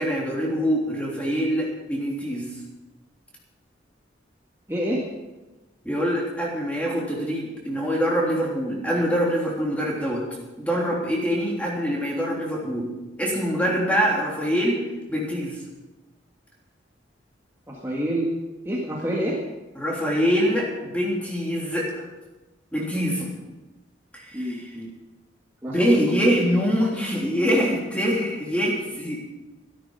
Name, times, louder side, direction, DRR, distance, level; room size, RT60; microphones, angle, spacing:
voice 1, 0.0-2.5 5.8-10.2 10.6-12.9 13.2-14.8 15.1-15.6 19.7-22.0 22.7-23.4 24.1-24.7 25.7-29.2, equal, 5° left, -3 dB, 3.3 m, -24 dB
voice 2, 4.7-5.0 17.7-18.3 18.7-19.4 24.3-24.9 25.6-25.7, right 1 dB, 15° right, -4 dB, 1.8 m, -27 dB
14.0 x 12.5 x 5.6 m, 1.1 s
head